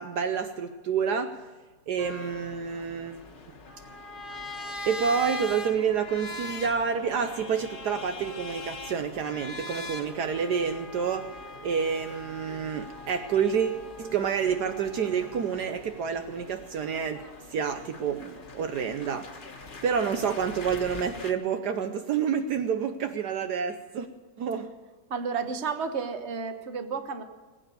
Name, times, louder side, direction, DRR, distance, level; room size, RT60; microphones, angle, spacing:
voice 1, 0.0-1.4 1.9-3.2 4.8-11.3 11.6-17.2 17.5-19.3 19.8-24.1 24.4-24.7, right 7 dB, 70° right, 8 dB, 1.3 m, -28 dB
sound 1, 2.0-21.3, left 2 dB, 30° left, 1.3 m, -42 dB
voice 2, 25.1-27.2, right 5 dB, 40° right, 8 dB, 1.4 m, -32 dB
20.0 x 8.9 x 6.9 m, 1.4 s
omnidirectional pair, 1.9 m